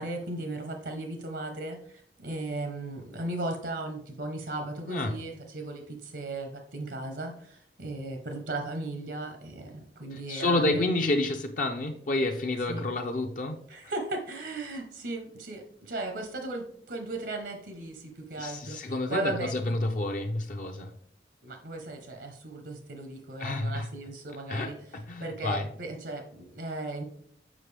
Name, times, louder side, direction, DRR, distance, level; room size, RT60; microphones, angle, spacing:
voice 1, 0.0-10.9 12.7-12.8 13.7-19.8 21.4-27.0, right 2 dB, 75° right, 4 dB, 0.9 m, -36 dB
voice 2, 10.1-13.6 18.4-20.9 23.4-23.9 24.5-25.7, left 2 dB, 50° left, 3 dB, 0.5 m, -29 dB
7.4 x 5.1 x 3.3 m, 0.65 s
head